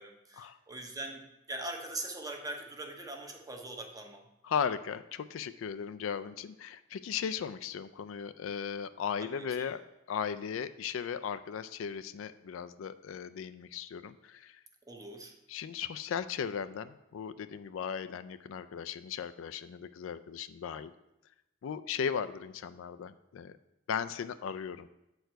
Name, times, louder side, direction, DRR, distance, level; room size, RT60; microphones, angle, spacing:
voice 1, 0.0-4.3 9.2-9.7 14.9-15.3, right 2 dB, 20° right, 3 dB, 0.8 m, -42 dB
voice 2, 4.4-9.8 10.1-14.6 15.5-20.9 21.6-23.5 23.9-24.9, left 7 dB, 75° left, 12 dB, 0.3 m, -37 dB
7.7 x 4.7 x 4.5 m, 0.92 s
head